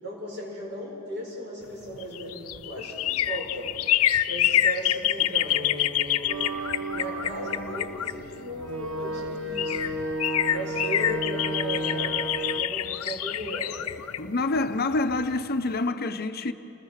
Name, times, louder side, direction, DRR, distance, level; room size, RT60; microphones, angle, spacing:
voice 1, 0.0-3.7 4.3-6.5 6.9-9.8 10.5-13.7, equal, 50° right, 7.0 m, -36 dB
sound 1, 1.9-8.7 9.3-9.4 9.6-15.3 15.7-15.8, left 12 dB, 80° left, 0.6 m, -27 dB
sound 2, 6.3-12.6, right 2 dB, 75° right, 1.1 m, -33 dB
voice 2, 14.2-16.5, left 2 dB, 45° left, 0.7 m, -27 dB
29.5 x 20.5 x 6.5 m
head